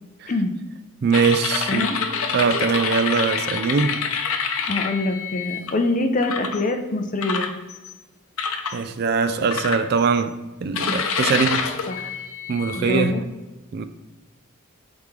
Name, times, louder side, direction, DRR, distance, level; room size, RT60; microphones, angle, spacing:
voice 1, 1.0-1.9 2.3-4.0 8.7-11.7 12.5-13.2 13.7-13.8, right 5 dB, 45° right, 0.3 m, -22 dB
sound 1, 1.1-5.7 6.2-6.6 7.2-7.9 8.4-8.8 9.5-10.2 10.7-13.1, left 6 dB, 70° left, 0.7 m, -27 dB
voice 2, 1.7-2.0 4.7-7.5 10.9-11.0 11.9-12.1 12.7-13.2, left 2 dB, 35° left, 0.6 m, -24 dB
8.4 x 3.6 x 3.2 m
head